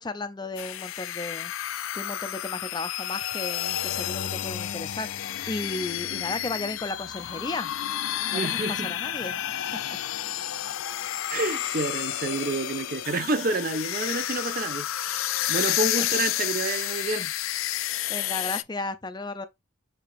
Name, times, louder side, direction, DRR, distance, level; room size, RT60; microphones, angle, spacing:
voice 1, 0.0-1.5 1.9-7.7 8.3-9.4 18.1-19.5, left 2 dB, 20° left, 0.4 m, -34 dB
sound 1, 0.6-18.6, left 12 dB, 80° left, 0.4 m, -31 dB
voice 2, 8.3-8.9 11.3-17.3, right 2 dB, 45° right, 0.5 m, -29 dB
6.7 x 2.9 x 2.5 m
head